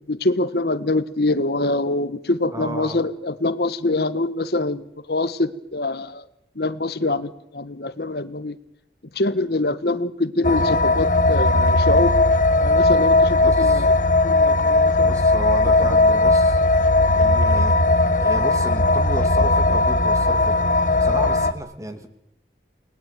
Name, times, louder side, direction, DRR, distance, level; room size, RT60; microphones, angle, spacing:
voice 1, 0.1-6.3 6.5-8.6 9.1-12.2 12.6-13.9 14.2-15.2 15.7-15.8 16.1-16.2, left 2 dB, 65° left, 14 dB, 1.4 m, -24 dB
voice 2, 2.5-3.0 13.4-13.9 15.0-16.6 17.1-20.5 21.0-22.1, right 1 dB, 20° right, 8 dB, 2.7 m, -33 dB
sound 1, 10.4-21.5, left 2 dB, 45° left, 1.4 m, -17 dB
30.0 x 20.0 x 9.1 m, 0.75 s
head